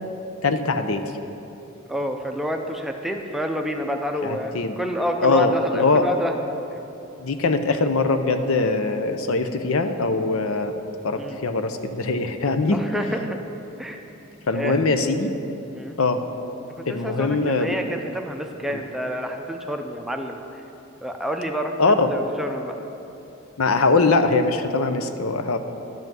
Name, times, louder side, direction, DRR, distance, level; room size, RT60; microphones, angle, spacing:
voice 1, 0.4-1.0 4.2-4.8 5.2-6.0 7.2-10.7 11.0-12.8 14.5-15.3 16.0-16.2 16.9-17.8 18.7-18.8 21.8-22.1 23.6-25.6, left 3 dB, 75° left, 8 dB, 0.7 m, -22 dB
voice 2, 1.9-6.4 11.1-11.4 12.7-13.4 13.8-14.0 14.5-14.8 15.7-15.9 16.7-20.6 21.0-22.8, equal, ahead, 3 dB, 0.5 m, -29 dB
12.0 x 5.6 x 7.5 m, 2.9 s
head